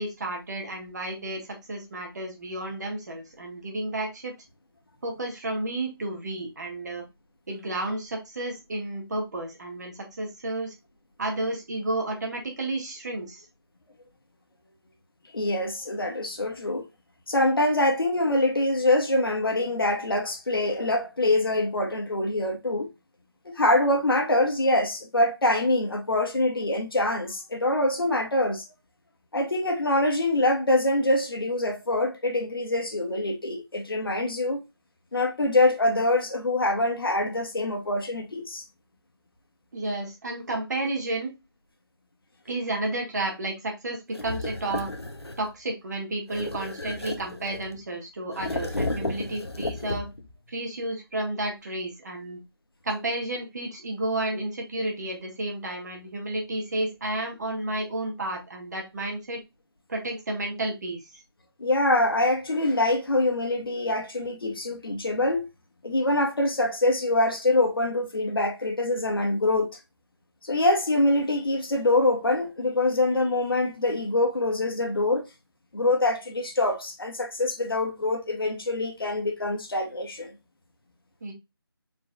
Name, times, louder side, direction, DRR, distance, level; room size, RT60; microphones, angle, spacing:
voice 1, 0.0-4.3 5.0-7.0 7.5-10.7 11.2-13.4 39.7-41.3 42.5-44.9 45.4-50.1 50.5-52.4 52.8-59.4 59.9-61.2 81.2-81.3, right 2 dB, 45° right, 1.9 m, -31 dB
voice 2, 15.3-16.9 17.3-22.9 23.4-28.6 29.3-34.6 35.1-38.6 61.6-65.5 65.8-69.8 70.4-75.3 75.7-80.3, left 2 dB, 60° left, 1.6 m, -24 dB
sound 1, 44.1-45.5 46.3-47.8 48.3-50.3, left 2 dB, 85° left, 1.1 m, -33 dB
4.5 x 4.4 x 2.3 m
figure-of-eight pair, 165°, 13 cm